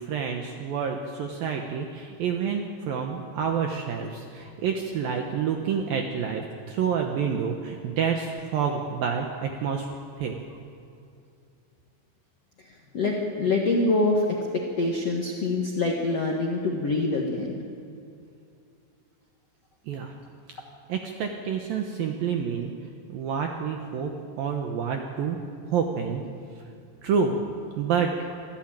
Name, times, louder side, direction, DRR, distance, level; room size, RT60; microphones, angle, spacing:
voice 1, 0.0-9.9 10.2-10.3 19.9-20.1 20.9-22.7 23.1-24.1 24.4-25.4 25.7-26.2 27.0-27.4 27.8-28.1, right 6 dB, 70° right, 3 dB, 2.3 m, -28 dB
voice 2, 12.9-14.4 14.8-17.6, left 2 dB, 65° left, 0 dB, 1.6 m, -25 dB
25.0 x 14.0 x 8.9 m, 2.4 s
omnidirectional pair, 5.4 m